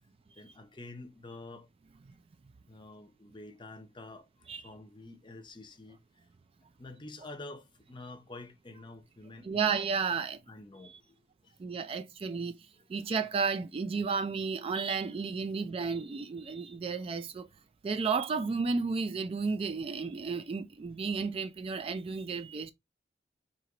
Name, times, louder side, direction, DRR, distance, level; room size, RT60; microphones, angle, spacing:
voice 1, 0.3-1.7 2.7-6.0 6.8-9.7 10.5-11.6 12.8-12.9, left 2 dB, 25° left, 0.7 m, -48 dB
voice 2, 9.4-10.4 11.6-12.6 12.9-17.5 17.8-22.7, right 5 dB, 30° right, 0.3 m, -32 dB
4.5 x 2.8 x 2.8 m
head